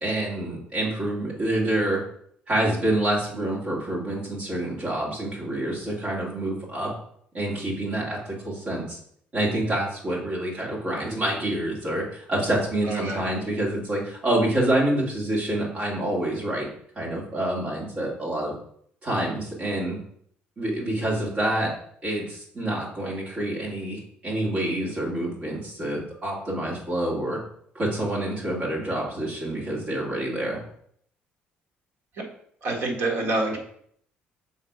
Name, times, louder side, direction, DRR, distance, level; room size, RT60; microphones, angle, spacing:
voice 1, 0.0-2.0 2.5-6.9 7.3-9.0 9.3-16.7 17.0-18.5 19.0-20.0 20.6-21.7 22.0-27.4 27.7-30.6, right 1 dB, 25° right, -4 dB, 2.2 m, -27 dB
voice 2, 12.9-13.2 32.6-33.6, right 2 dB, 50° right, 0 dB, 1.6 m, -26 dB
6.5 x 4.0 x 5.0 m, 0.65 s
cardioid pair, 180°, 4 cm